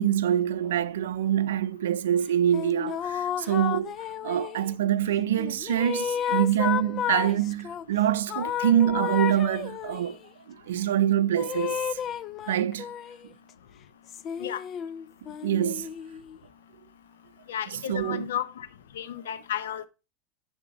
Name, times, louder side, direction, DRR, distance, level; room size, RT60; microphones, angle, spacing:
voice 1, 0.0-3.9 4.2-10.2 10.5-12.0 12.5-12.9 15.4-15.9 17.7-18.3, right 10 dB, 90° right, 0.5 m, -25 dB
sound 1, 2.5-4.7 5.4-7.8 8.3-10.2 11.4-13.3 14.1-16.4, left 9 dB, 40° left, 0.4 m, -32 dB
voice 2, 17.5-18.7 19.0-19.9, left 10 dB, 90° left, 0.8 m, -33 dB
10.5 x 3.5 x 4.0 m
supercardioid pair, 115°, 0 cm